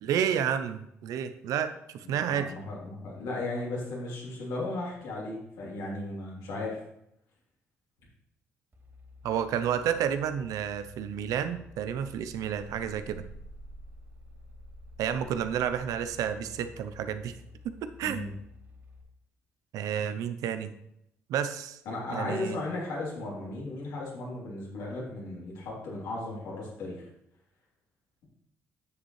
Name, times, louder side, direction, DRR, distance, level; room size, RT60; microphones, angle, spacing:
voice 1, 0.0-2.5 9.2-13.2 15.0-17.3 18.0-18.2 19.7-20.7 21.3-21.8 22.1-22.6, right 9 dB, 75° right, 10 dB, 0.7 m, -30 dB
voice 2, 2.0-6.8 18.0-18.3 21.8-27.0, left 2 dB, 80° left, -5 dB, 3.3 m, -36 dB
sound 1, 8.7-19.0, left 1 dB, 40° right, 3.0 m, -50 dB
9.6 x 7.4 x 3.2 m, 0.80 s
supercardioid pair, 60°, 6 cm